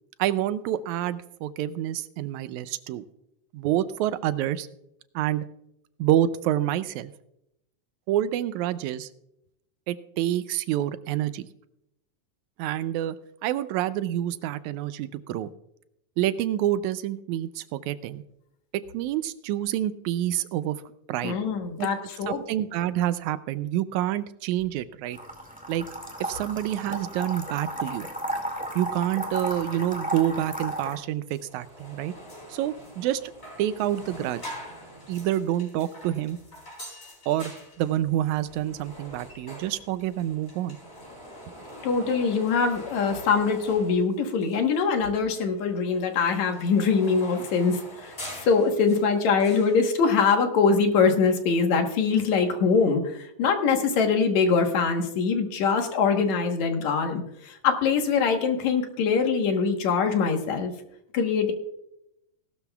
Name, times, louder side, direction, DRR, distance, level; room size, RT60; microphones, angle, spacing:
voice 1, 0.2-3.0 3.5-4.7 5.2-5.5 6.0-7.1 8.1-9.1 9.9-11.5 12.6-13.2 13.4-15.5 16.2-18.2 18.7-20.8 21.1-21.4 21.8-21.9 22.3-25.2 25.7-25.9 26.2-28.1 28.8-32.1 32.5-33.3 33.6-34.4 35.1-36.4 37.3-37.5 37.8-40.8, right 12 dB, 85° right, 14 dB, 1.9 m, -27 dB
voice 2, 21.2-22.4 41.8-48.1 48.4-60.7 61.1-61.5, left 5 dB, 70° left, 5 dB, 2.5 m, -23 dB
sound 1, 25.1-31.0, right 1 dB, 5° right, 1.5 m, -34 dB
sound 2, 30.9-31.0 31.3-44.8 45.1-49.8, equal, 20° left, 4.1 m, -44 dB
17.5 x 12.5 x 2.3 m, 0.81 s
omnidirectional pair, 3.4 m